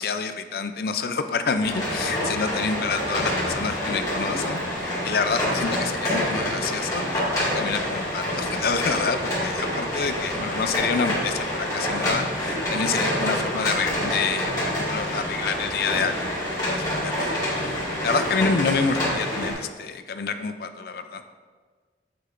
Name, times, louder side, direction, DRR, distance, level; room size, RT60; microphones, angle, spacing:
voice 1, 0.0-16.3 16.7-21.2, left 5 dB, 55° left, 9 dB, 0.4 m, -28 dB
sound 1, 1.6-19.5, left 1 dB, 20° left, 2.0 m, -27 dB
7.7 x 6.4 x 2.5 m, 1.5 s
head